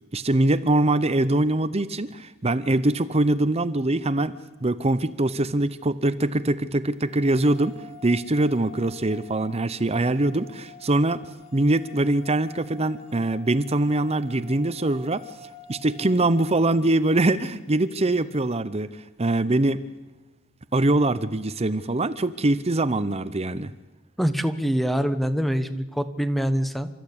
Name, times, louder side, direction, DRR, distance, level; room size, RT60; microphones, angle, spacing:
voice 1, 0.1-4.3 4.6-11.2 11.5-15.2 15.7-18.9 19.2-19.8 20.7-23.7, right 2 dB, 30° right, 13 dB, 0.8 m, -23 dB
sound 1, 7.1-17.2, left 3 dB, 35° left, 5.8 m, -48 dB
voice 2, 24.2-26.9, equal, ahead, 10 dB, 1.2 m, -24 dB
30.0 x 14.0 x 8.7 m, 1.1 s
head